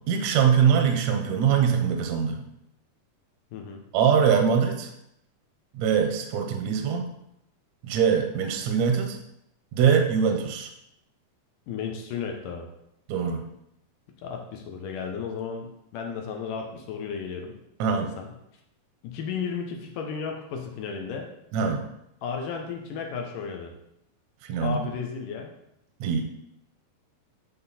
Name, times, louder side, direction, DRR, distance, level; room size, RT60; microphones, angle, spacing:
voice 1, 0.1-2.4 3.9-4.9 5.7-7.1 7.8-9.2 9.7-10.7 13.1-13.5 17.8-18.1 21.5-21.9 24.4-24.8 26.0-26.2, right 7 dB, 70° right, 4 dB, 1.8 m, -23 dB
voice 2, 3.5-3.8 11.7-12.7 14.2-17.5 18.2-18.3 19.0-21.3 22.2-23.7 24.6-25.5, left 6 dB, 75° left, 2 dB, 2.3 m, -34 dB
10.0 x 3.8 x 4.1 m, 0.80 s
omnidirectional pair, 4.1 m